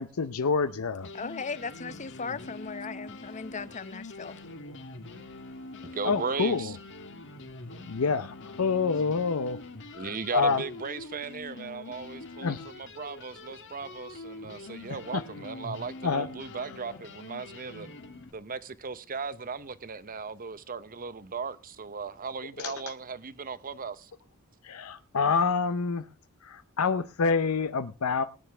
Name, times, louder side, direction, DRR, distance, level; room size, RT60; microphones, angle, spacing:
voice 1, 0.0-1.1 4.4-4.8 6.0-6.7 7.9-9.6 9.9-10.6 12.4-12.7 15.1-15.2 16.0-16.3 22.6-22.7 24.6-26.1 26.4-28.2, left 5 dB, 75° left, 0.6 m, -27 dB
sound 1, 0.6-0.7 1.0-18.3, left 2 dB, 60° left, 1.5 m, -44 dB
voice 2, 1.1-4.4, left 5 dB, 35° left, 0.7 m, -37 dB
voice 3, 5.8-6.8 9.9-17.9 18.3-24.1, right 5 dB, 40° right, 0.8 m, -37 dB
19.0 x 10.0 x 3.4 m
head